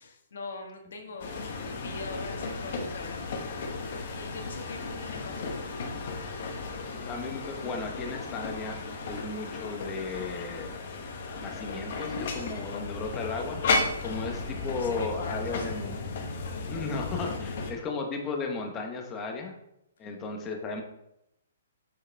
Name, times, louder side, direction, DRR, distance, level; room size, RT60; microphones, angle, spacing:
voice 1, 0.0-1.4 1.7-3.5 4.1-5.4 14.0-14.5 14.7-16.0 17.4-17.5, left 3 dB, 70° left, 3 dB, 1.7 m, -42 dB
sound 1, 1.2-17.7, left 3 dB, 45° left, 1.3 m, -34 dB
voice 2, 6.9-10.7 11.2-13.6 14.0-16.0 16.7-19.5 20.0-20.8, left 4 dB, 15° left, 2 dB, 1.0 m, -35 dB
7.6 x 7.1 x 3.4 m, 0.82 s
hypercardioid pair, 170°, 0 cm